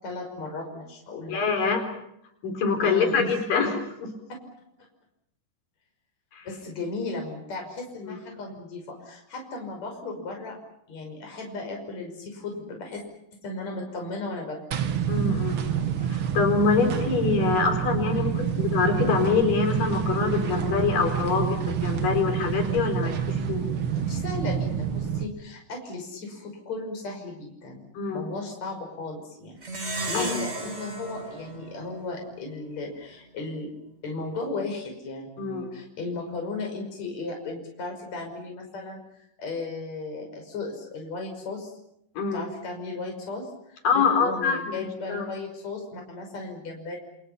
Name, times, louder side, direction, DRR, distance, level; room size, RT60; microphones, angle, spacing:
voice 1, 0.0-1.7 2.8-3.3 6.4-10.6 10.9-13.0 13.4-14.6 23.9-27.8 28.1-33.7 34.0-41.7 42.3-47.0, left 3 dB, 50° left, 2 dB, 6.8 m, -35 dB
voice 2, 1.3-1.8 2.4-4.1 6.3-6.5 8.0-8.2 15.1-15.6 16.1-23.2 23.5-23.7 28.0-28.3 30.1-30.3 35.4-35.7 42.2-42.4 43.8-45.2, left 5 dB, 75° left, 5 dB, 5.9 m, -25 dB
sound 1, 14.7-25.3, right 9 dB, 50° right, 2.0 m, -27 dB
Plucked string instrument, 29.6-32.4, right 2 dB, 20° right, 2.6 m, -35 dB
28.5 x 28.0 x 5.9 m, 0.77 s
omnidirectional pair, 3.9 m